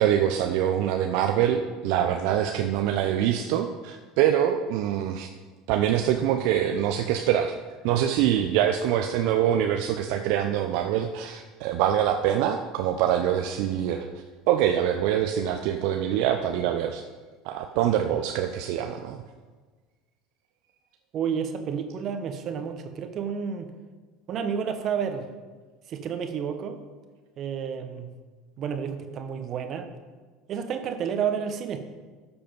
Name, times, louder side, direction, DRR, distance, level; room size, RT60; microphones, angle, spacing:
voice 1, 0.0-5.3 5.7-7.5 7.8-17.0 17.4-19.2, right 10 dB, 65° right, 6 dB, 0.6 m, -24 dB
voice 2, 21.1-23.7 24.3-25.2 25.9-26.8 27.4-28.1 28.6-29.9 30.5-31.8, right 7 dB, 45° right, 7 dB, 1.2 m, -30 dB
12.5 x 6.9 x 5.3 m, 1.4 s
hypercardioid pair, 70°, 0 cm